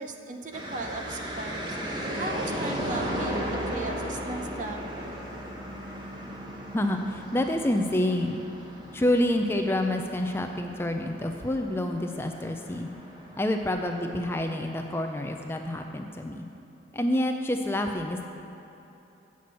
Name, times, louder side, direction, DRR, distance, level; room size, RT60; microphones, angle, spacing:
voice 1, 0.0-1.8 2.2-4.8, right 2 dB, 45° right, 4 dB, 0.7 m, -36 dB
sound 1, 0.5-16.0, equal, 25° right, 1.0 m, -36 dB
voice 2, 6.7-8.4 8.9-13.0 13.4-16.5 16.9-18.2, left 1 dB, 15° left, 4 dB, 0.4 m, -28 dB
8.4 x 5.9 x 7.4 m, 3.0 s
head